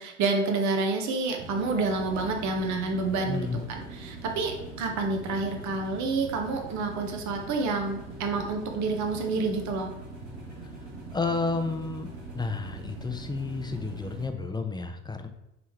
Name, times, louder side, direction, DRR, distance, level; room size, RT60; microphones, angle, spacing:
voice 1, 0.0-9.9, right 3 dB, 50° right, 3 dB, 1.2 m, -29 dB
sound 1, 1.4-14.3, right 2 dB, 85° right, 1.5 m, -42 dB
voice 2, 3.3-3.6 11.1-12.1 12.3-15.3, left 3 dB, 10° left, 6 dB, 0.7 m, -31 dB
8.7 x 3.5 x 3.2 m, 0.88 s
hypercardioid pair, 65°, 36 cm